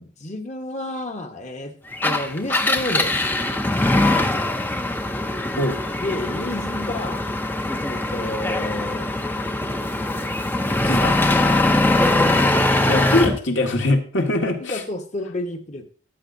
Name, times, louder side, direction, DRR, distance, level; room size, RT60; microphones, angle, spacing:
voice 1, 0.0-1.7 2.0-3.2 6.0-7.2 7.8-9.1 11.9-12.9 14.4-15.9, left 1 dB, 35° left, 5 dB, 1.1 m, -31 dB
Engine, 1.9-13.4, left 2 dB, 10° left, 0.5 m, -21 dB
voice 2, 10.8-11.2 12.9-14.8, left 2 dB, 75° left, 2 dB, 1.8 m, -22 dB
13.0 x 9.1 x 2.7 m, 0.42 s
head